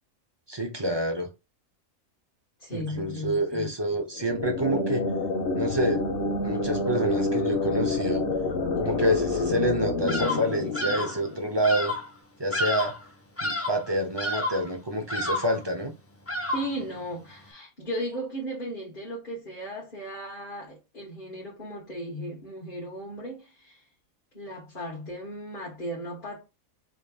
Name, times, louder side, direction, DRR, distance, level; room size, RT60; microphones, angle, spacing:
voice 1, 0.5-1.3 2.7-5.1 5.5-6.1 6.4-8.3 8.8-11.9 12.4-12.9 13.4-15.9, equal, 25° right, 0.8 m, -27 dB
voice 2, 2.6-3.7 16.5-23.8 24.3-26.5, equal, 40° left, 1.6 m, -36 dB
sound 1, 4.1-11.8, left 2 dB, 60° left, 1.3 m, -28 dB
Bird vocalization bird call bird song, 10.1-10.5 10.7-11.2 11.6-12.1 12.5-13.0 13.4-13.8 14.2-14.7 15.1-15.6 16.3-16.8, left 1 dB, 15° left, 0.6 m, -30 dB
5.0 x 3.2 x 2.4 m
omnidirectional pair, 1.4 m